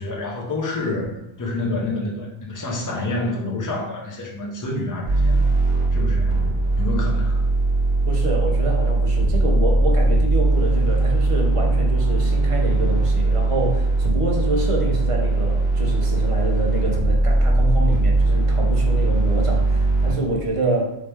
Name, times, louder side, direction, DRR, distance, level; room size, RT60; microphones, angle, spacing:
voice 1, 0.0-5.3 5.9-6.4 6.8-7.5, left 2 dB, 25° left, -1 dB, 0.5 m, -28 dB
sound 1, 5.0-20.1, right 2 dB, 40° left, 1.5 m, -19 dB
voice 2, 8.1-20.9, right 1 dB, 40° right, 0 dB, 0.5 m, -27 dB
3.2 x 2.9 x 3.3 m, 0.86 s
omnidirectional pair, 1.1 m